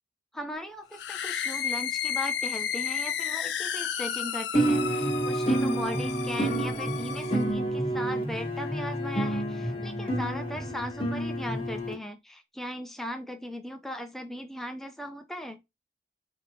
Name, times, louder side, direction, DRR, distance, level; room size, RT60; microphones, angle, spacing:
voice 1, 0.3-15.6, equal, ahead, 0.5 m, -38 dB
sound 1, 0.9-7.5, left 8 dB, 75° left, 0.4 m, -33 dB
sound 2, 4.5-11.9, right 1 dB, 30° left, 1.0 m, -29 dB
3.7 x 2.8 x 2.7 m
head